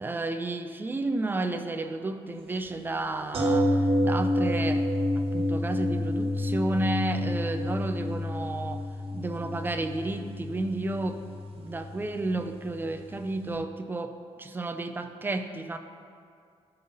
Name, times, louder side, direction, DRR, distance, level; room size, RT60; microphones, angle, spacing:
voice 1, 0.0-4.9 5.2-8.8 9.1-11.2 11.6-15.8, right 2 dB, 20° right, 7 dB, 0.5 m, -32 dB
sound 1, 3.3-13.2 13.5-13.6, left 1 dB, 55° right, 1.4 m, -29 dB
13.5 x 5.5 x 4.0 m, 2.3 s
wide cardioid pair, 155°, 11 cm